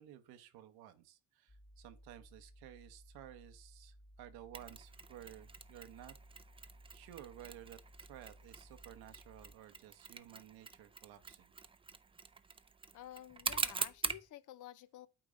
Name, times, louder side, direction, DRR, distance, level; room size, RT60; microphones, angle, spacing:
voice 1, 0.0-6.1 6.9-11.5, right 12 dB, 85° right, 1.0 m, -54 dB
sound 1, 1.5-9.6, equal, 25° left, 1.1 m, -60 dB
Mechanisms, 4.5-14.3, right 5 dB, 15° right, 0.4 m, -44 dB
voice 2, 12.9-15.1, left 13 dB, 55° left, 0.6 m, -51 dB
8.7 x 3.0 x 5.0 m
supercardioid pair, 80°, 37 cm